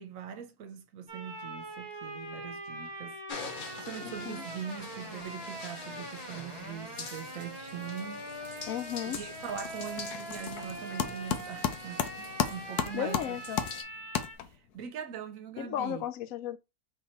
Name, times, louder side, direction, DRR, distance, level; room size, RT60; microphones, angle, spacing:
voice 1, 0.0-3.2 3.8-8.7 9.0-13.4 14.4-16.0, right 8 dB, 65° right, 1.1 m, -42 dB
sound 1, 1.1-14.3, right 1 dB, 20° right, 0.7 m, -43 dB
sound 2, 3.3-13.8, left 5 dB, 50° left, 0.7 m, -45 dB
voice 2, 4.0-4.4 8.7-9.2 12.9-13.6 15.6-16.6, left 10 dB, 70° left, 0.9 m, -35 dB
sound 3, 8.3-8.6 8.9-14.8, left 8 dB, 90° left, 1.2 m, -35 dB
3.9 x 2.9 x 4.3 m
omnidirectional pair, 1.6 m